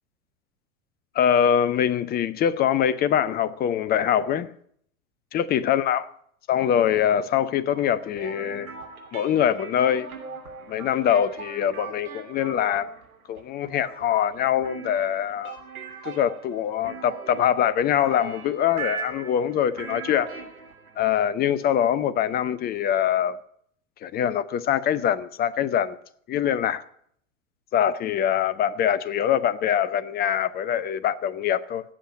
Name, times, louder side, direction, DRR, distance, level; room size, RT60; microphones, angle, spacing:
voice 1, 1.1-4.5 5.3-6.1 6.5-8.7 9.1-10.1 10.7-12.9 13.3-15.6 16.0-20.3 21.0-23.4 24.0-26.0 26.3-26.8 27.7-31.8, left 9 dB, 20° left, 0.7 m, -23 dB
sound 1, 7.7-21.2, right 6 dB, 80° right, 3.1 m, -40 dB
16.5 x 7.4 x 8.9 m
figure-of-eight pair, 90°, 43 cm